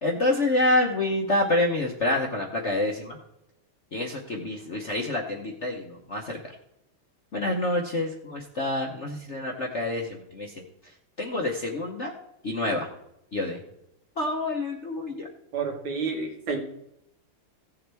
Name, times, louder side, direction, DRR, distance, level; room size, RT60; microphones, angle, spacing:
voice 1, 0.0-3.2 3.9-6.4 7.3-10.5 11.2-12.1 12.4-12.9 13.3-13.6 14.2-15.3, left 2 dB, 45° left, 1 dB, 0.9 m, -27 dB
voice 2, 15.5-16.6, right 5 dB, 65° right, 0 dB, 2.7 m, -29 dB
16.0 x 7.1 x 3.5 m, 0.81 s
omnidirectional pair, 2.4 m